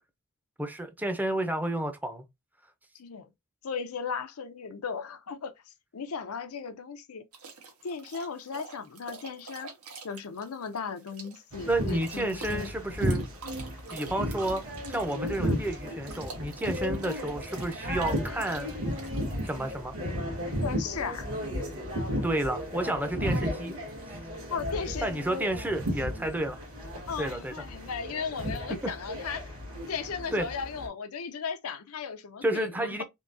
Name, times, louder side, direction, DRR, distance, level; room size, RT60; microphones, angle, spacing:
voice 1, 0.6-2.2 11.7-13.2 13.9-18.8 19.4-19.9 22.2-23.7 25.0-26.6 27.2-27.5 28.8-28.9 30.3-30.5 32.4-33.0, right 1 dB, 10° right, 0.6 m, -31 dB
voice 2, 2.9-3.3 3.6-7.2 7.8-9.7 10.0-12.7 15.4-15.6 20.6-21.3 24.5-25.3 27.1-29.6 29.9-33.0, left 6 dB, 80° left, 0.6 m, -36 dB
sound 1, 7.3-19.8, right 4 dB, 85° right, 1.2 m, -47 dB
sound 2, 11.5-30.9, equal, 70° right, 1.6 m, -34 dB
3.7 x 2.7 x 2.6 m
head